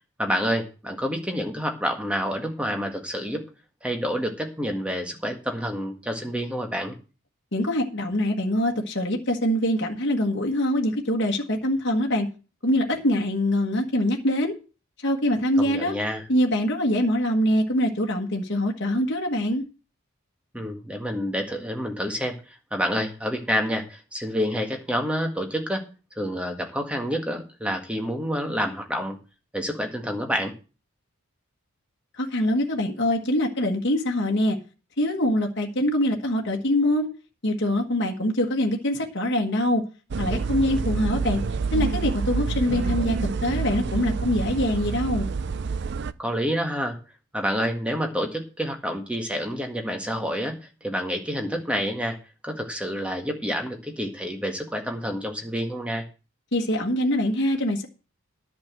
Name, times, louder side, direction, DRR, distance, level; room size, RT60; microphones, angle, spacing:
voice 1, 0.2-3.4 3.8-6.9 15.6-16.2 20.5-25.8 26.1-29.2 29.5-30.5 46.2-47.0 47.3-52.2 52.4-56.0, equal, 5° right, 1.7 m, -28 dB
voice 2, 7.5-12.3 12.6-14.5 15.0-15.9 16.3-19.6 32.2-34.6 35.0-37.1 37.4-39.8 40.2-41.4 41.7-45.3 56.5-57.9, left 1 dB, 50° left, 1.5 m, -24 dB
sound 1, 40.1-46.1, right 5 dB, 50° right, 0.4 m, -27 dB
10.5 x 6.1 x 7.7 m
head